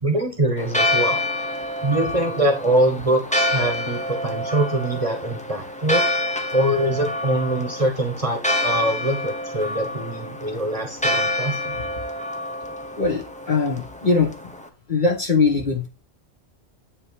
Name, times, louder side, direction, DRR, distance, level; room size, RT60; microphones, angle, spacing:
voice 1, 0.0-1.2 1.8-6.0 6.5-11.8, right 1 dB, 30° right, 3 dB, 1.2 m, -23 dB
Church bell, 0.6-14.7, left 1 dB, 10° left, 0.6 m, -27 dB
voice 2, 13.0-14.3 14.9-15.9, left 4 dB, 40° left, 0 dB, 1.5 m, -21 dB
9.4 x 3.3 x 4.8 m, 0.30 s
omnidirectional pair, 1.3 m